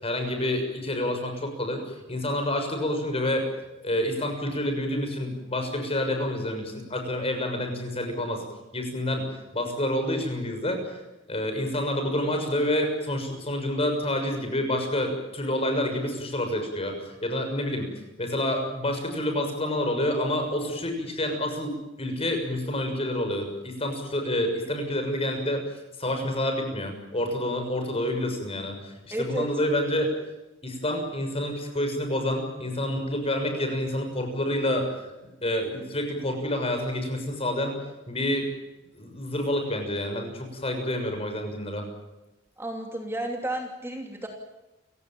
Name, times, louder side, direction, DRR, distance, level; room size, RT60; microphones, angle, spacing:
voice 1, 0.0-3.5 3.8-8.4 8.7-11.0 11.3-17.9 18.2-25.6 26.0-30.1 30.6-37.8 38.1-38.5 38.9-41.9, left 1 dB, 30° left, 5 dB, 6.5 m, -28 dB
voice 2, 29.1-29.5 42.6-44.3, right 1 dB, 15° right, 2 dB, 2.8 m, -32 dB
29.5 x 17.0 x 9.0 m, 1.0 s
head